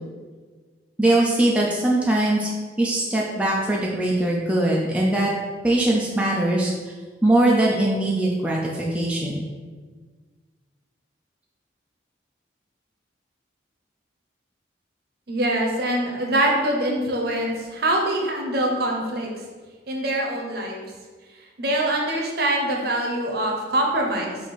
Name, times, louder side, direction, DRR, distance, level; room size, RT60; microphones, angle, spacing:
voice 1, 1.0-2.5 2.8-5.3 5.6-6.7 7.2-9.4, right 1 dB, 5° right, -4 dB, 0.3 m, -21 dB
voice 2, 15.3-19.3 19.9-20.8 21.6-24.4, right 1 dB, 55° right, 0 dB, 0.7 m, -24 dB
4.1 x 2.6 x 4.7 m, 1.5 s
head